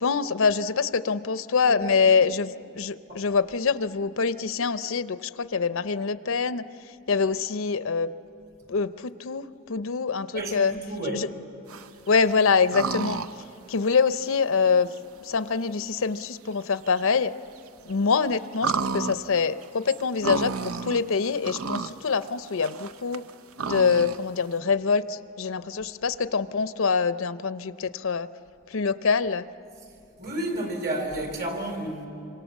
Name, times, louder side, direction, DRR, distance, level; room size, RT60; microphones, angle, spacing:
voice 1, 0.0-6.6 7.1-8.1 8.7-10.7 11.1-11.3 12.1-13.2 13.7-14.9 15.2-17.3 17.8-23.2 23.7-28.3 28.7-29.4, left 5 dB, 70° left, 13 dB, 0.6 m, -25 dB
voice 2, 1.6-2.1 3.1-3.2 10.3-11.2 30.2-32.1, right 1 dB, 50° right, 3 dB, 4.3 m, -31 dB
sound 1, 11.7-12.2 12.7-13.4 13.9-14.0 14.9-15.0 16.2-16.3 16.6-16.7 16.9-17.0 17.6-17.9 18.5-21.0 21.3-21.9 22.2-24.2, right 5 dB, 80° right, 0.7 m, -31 dB
26.5 x 25.5 x 7.2 m, 2.6 s
head